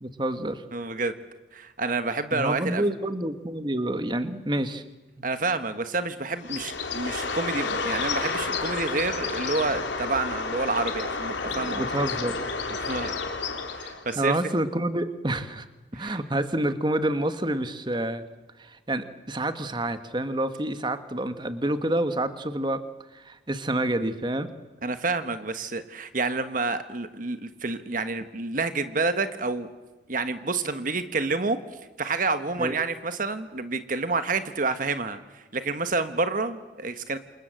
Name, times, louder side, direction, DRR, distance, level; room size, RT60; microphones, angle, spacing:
voice 1, 0.0-0.6 2.3-4.8 11.4-12.4 14.1-15.7 15.9-18.2 18.6-22.8 23.1-24.5 32.6-32.8, right 1 dB, 25° right, 9 dB, 1.5 m, -28 dB
voice 2, 0.7-1.1 1.5-2.8 5.2-11.8 12.8-13.1 13.7-14.3 15.9-16.2 24.8-29.7 30.1-31.6 32.0-37.2, right 3 dB, 45° right, 9 dB, 1.4 m, -29 dB
Bird, 6.4-14.1, left 4 dB, 75° left, 3.6 m, -30 dB
28.5 x 27.0 x 7.7 m, 1.2 s
head